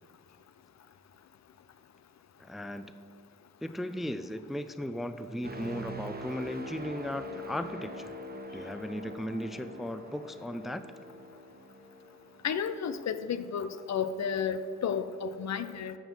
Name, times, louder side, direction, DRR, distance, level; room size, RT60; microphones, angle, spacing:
voice 1, 2.4-2.9 3.6-8.1 8.5-10.8, left 1 dB, ahead, 11 dB, 0.4 m, -36 dB
sound 1, 5.4-13.2 13.7-13.9, equal, 30° right, 1.1 m, -44 dB
voice 2, 12.4-16.0, left 7 dB, 60° left, 12 dB, 0.6 m, -32 dB
11.0 x 3.7 x 7.3 m, 2.3 s
supercardioid pair, 55°, 32 cm